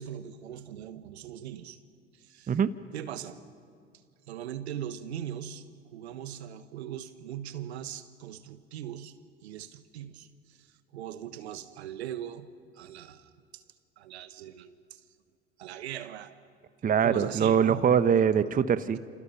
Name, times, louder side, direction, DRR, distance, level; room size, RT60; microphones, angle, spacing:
voice 1, 0.0-1.8 2.1-2.6 2.9-3.4 4.2-5.7 5.9-9.2 9.4-13.6 14.0-15.0 15.6-16.3 17.0-17.8, right 10 dB, 80° right, 12 dB, 1.3 m, -40 dB
voice 2, 16.8-19.0, right 7 dB, 25° right, 13 dB, 1.0 m, -23 dB
29.0 x 27.5 x 5.9 m, 2.2 s
hypercardioid pair, 75°, 32 cm